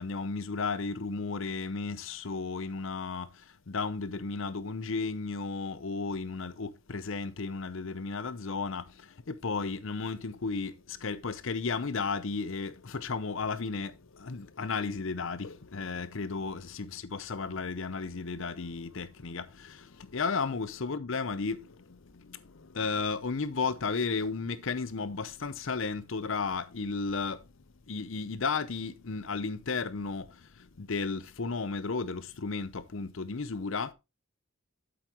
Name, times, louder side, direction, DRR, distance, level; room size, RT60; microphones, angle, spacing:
voice 1, 0.0-27.5 27.9-33.9, left 4 dB, 60° left, 0.7 m, -34 dB
7.9 x 7.8 x 2.9 m
head